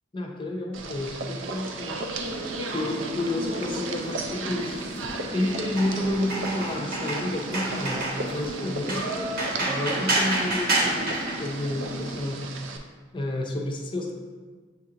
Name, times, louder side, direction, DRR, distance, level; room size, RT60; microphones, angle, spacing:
voice 1, 0.1-2.2 2.7-4.8 5.3-8.0 8.3-12.4 13.1-14.1, left 1 dB, 25° left, 1 dB, 0.5 m, -30 dB
sound 1, 0.7-12.8, right 3 dB, 75° right, 0.4 m, -35 dB
sound 2, 2.1-12.2, right 1 dB, 55° right, 0.9 m, -31 dB
7.0 x 2.5 x 2.8 m, 1.5 s
head